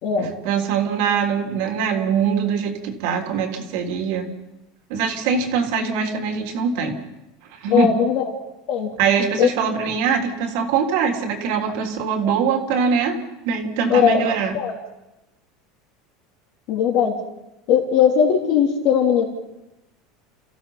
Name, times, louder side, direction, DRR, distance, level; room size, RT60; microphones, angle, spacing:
voice 1, 0.2-4.3 4.9-7.0 7.6-7.9 9.0-13.2 13.4-14.5, right 6 dB, 70° right, 3 dB, 3.3 m, -22 dB
voice 2, 7.7-8.2 8.7-8.9 9.4-9.5 13.9-14.3 14.5-14.8 16.7-17.2 17.7-19.3, left 8 dB, 55° left, -1 dB, 3.5 m, -18 dB
30.0 x 15.5 x 5.7 m, 0.96 s
supercardioid pair, 150°, 0 cm